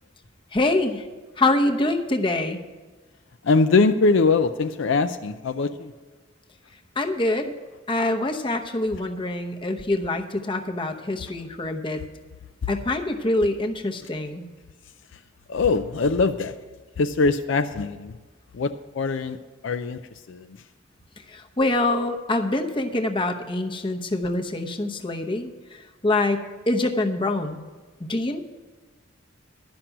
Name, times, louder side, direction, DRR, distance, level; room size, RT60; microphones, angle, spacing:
voice 1, 0.5-1.0 1.4-2.6 7.0-7.5 7.9-12.0 12.7-14.4 21.3-27.6 28.0-28.4, left 2 dB, 25° left, 3 dB, 0.9 m, -25 dB
voice 2, 3.4-5.9 15.5-16.5 17.0-18.1 18.5-19.4 19.6-20.0 20.3-20.5, left 4 dB, 70° left, 8 dB, 0.5 m, -22 dB
11.5 x 6.0 x 9.0 m, 1.3 s
head